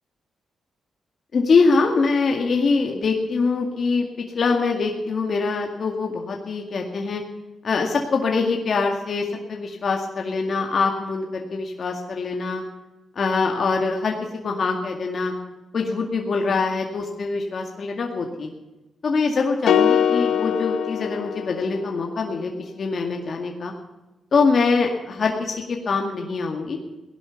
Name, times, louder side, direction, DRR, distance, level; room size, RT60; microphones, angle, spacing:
voice 1, 1.3-4.1 4.3-7.2 7.6-12.6 13.2-14.2 14.4-15.3 15.7-18.5 19.0-23.7 24.3-26.8, left 4 dB, 55° left, 1 dB, 2.0 m, -23 dB
sound 1, 19.7-22.0, left 8 dB, 75° left, 0.8 m, -22 dB
17.5 x 11.5 x 7.0 m, 1.1 s
cardioid pair, 90°, 0 cm